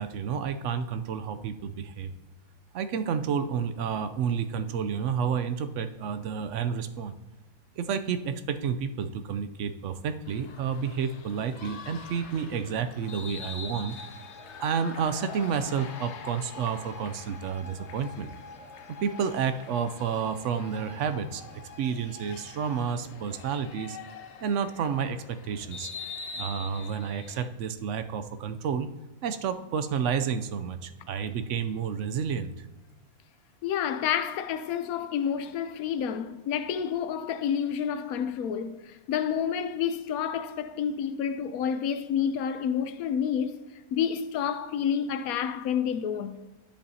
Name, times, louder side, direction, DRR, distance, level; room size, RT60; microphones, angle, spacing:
voice 1, 0.0-2.1 2.7-7.1 7.8-14.0 14.6-18.3 19.0-24.0 24.4-25.9 26.3-28.9 29.2-32.7, right 7 dB, 70° right, 0.8 m, -30 dB
sound 1, 10.2-27.5, left 4 dB, 60° left, 0.9 m, -44 dB
voice 2, 33.6-43.7 43.9-46.4, left 8 dB, 85° left, 1.1 m, -29 dB
10.0 x 7.9 x 2.7 m
omnidirectional pair, 1.5 m